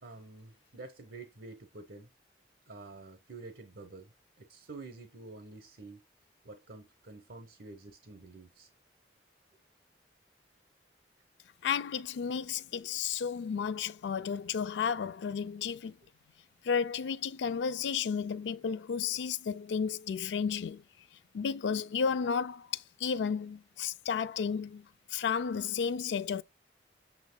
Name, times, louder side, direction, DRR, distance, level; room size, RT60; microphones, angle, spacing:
voice 1, 0.0-2.1 2.7-4.1 4.4-6.0 6.4-8.7, right 3 dB, 70° right, 0.8 m, -48 dB
voice 2, 11.6-16.0 16.6-20.8 21.3-24.9 25.1-26.4, left 6 dB, 85° left, 0.3 m, -32 dB
8.0 x 3.0 x 2.2 m
head